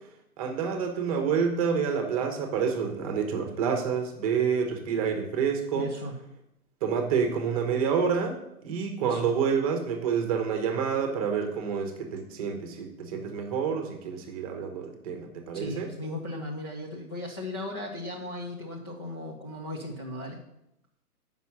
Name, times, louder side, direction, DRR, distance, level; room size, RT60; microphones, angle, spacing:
voice 1, 0.4-5.9 6.8-15.9, right 6 dB, 25° right, 4 dB, 1.1 m, -28 dB
voice 2, 5.7-6.2 9.0-9.3 14.2-14.4 15.5-20.4, left 1 dB, 15° left, -2 dB, 0.5 m, -37 dB
8.1 x 5.6 x 5.9 m, 0.84 s
hypercardioid pair, 145°, 46 cm